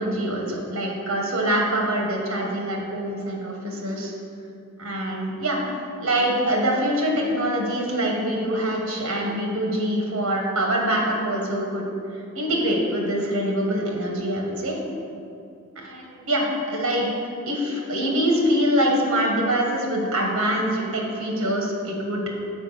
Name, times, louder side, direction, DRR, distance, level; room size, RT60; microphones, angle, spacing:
voice 1, 0.0-4.1 4.8-5.6 6.0-11.9 12.3-14.8 15.7-17.1 17.5-22.2, right 1 dB, 65° right, -1 dB, 1.5 m, -24 dB
7.1 x 4.6 x 5.7 m, 2.5 s
head